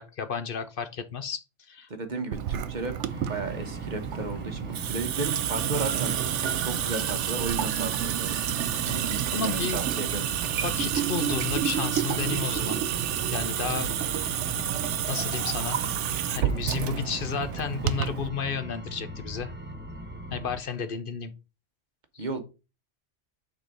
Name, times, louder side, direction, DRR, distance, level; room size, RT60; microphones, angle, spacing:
voice 1, 0.0-1.4 1.7-1.9 4.2-4.3 9.3-9.8 10.6-12.8 13.2-13.9 15.1-15.8 16.3-19.5 20.3-21.3 22.1-22.3, left 6 dB, 55° left, 0.9 m, -32 dB
voice 2, 1.9-2.9 3.3-6.2 6.6-8.4 8.9-10.2 22.2-22.4, right 3 dB, 40° right, 1.2 m, -34 dB
Water tap faucet / Sink (filling or washing) / Drip, 2.3-18.3, right 10 dB, 75° right, 0.9 m, -29 dB
sound 1, 3.1-20.6, equal, 15° right, 0.5 m, -40 dB
6.4 x 3.9 x 5.1 m
omnidirectional pair, 1.2 m